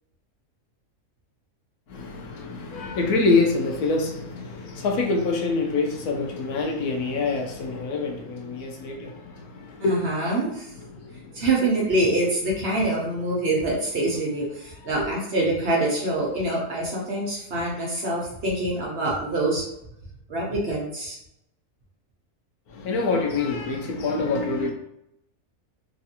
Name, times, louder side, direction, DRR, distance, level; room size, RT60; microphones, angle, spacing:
voice 1, 1.9-10.1 10.7-11.4 14.8-15.1 22.7-24.7, left 3 dB, 90° left, 2 dB, 1.1 m, -26 dB
voice 2, 9.8-10.7 11.3-19.6 20.3-21.2, right 2 dB, 50° right, -4 dB, 0.8 m, -25 dB
3.1 x 2.5 x 2.8 m, 0.81 s
omnidirectional pair, 1.5 m